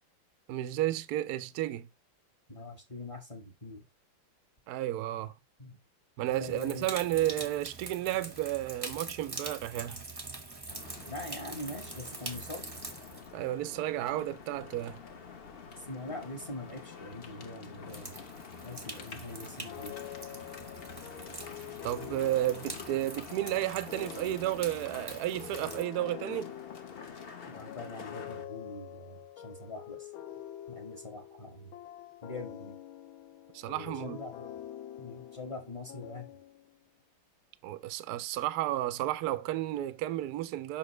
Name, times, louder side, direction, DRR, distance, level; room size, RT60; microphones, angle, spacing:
voice 1, 0.5-1.9 4.7-5.3 6.2-10.0 13.3-15.0 21.8-26.5 33.5-34.2 37.6-40.8, right 14 dB, 80° right, 0.8 m, -32 dB
voice 2, 2.5-3.8 5.6-5.8 6.2-6.9 11.1-12.7 15.8-18.2 18.6-20.0 27.5-30.1 30.7-31.7 32.2-32.8 33.7-34.6 35.0-36.3, left 2 dB, 25° left, 0.8 m, -43 dB
sound 1, 6.3-15.6 16.4-16.5 17.9-25.8, right 3 dB, 25° right, 0.4 m, -45 dB
sound 2, 10.7-28.4, left 6 dB, 60° left, 0.6 m, -47 dB
sound 3, 19.6-36.8, left 12 dB, 75° left, 1.4 m, -46 dB
7.3 x 5.5 x 3.1 m
omnidirectional pair, 2.3 m